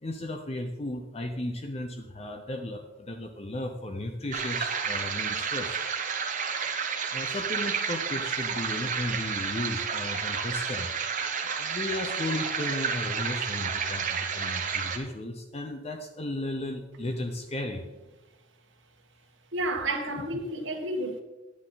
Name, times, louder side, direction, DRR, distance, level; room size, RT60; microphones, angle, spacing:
voice 1, 0.0-5.8 7.1-10.9 11.4-17.8, left 1 dB, 30° left, 0.7 m, -35 dB
sound 1, 4.3-15.0, right 6 dB, 40° right, 1.1 m, -31 dB
voice 2, 19.5-21.2, right 1 dB, 65° right, 1.6 m, -31 dB
9.9 x 9.4 x 4.0 m
head